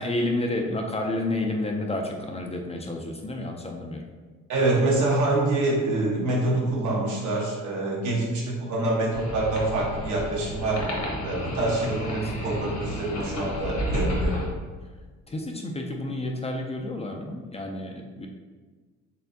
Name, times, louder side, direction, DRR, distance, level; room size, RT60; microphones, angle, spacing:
voice 1, 0.0-4.0 12.2-12.3 15.3-18.3, left 1 dB, 20° left, 2 dB, 0.4 m, -30 dB
voice 2, 4.5-14.3, right 2 dB, 75° right, -4 dB, 1.3 m, -26 dB
sound 1, 9.1-14.5, left 1 dB, 65° left, 1.2 m, -31 dB
4.4 x 3.4 x 2.7 m, 1.4 s
cardioid pair, 90°, 30 cm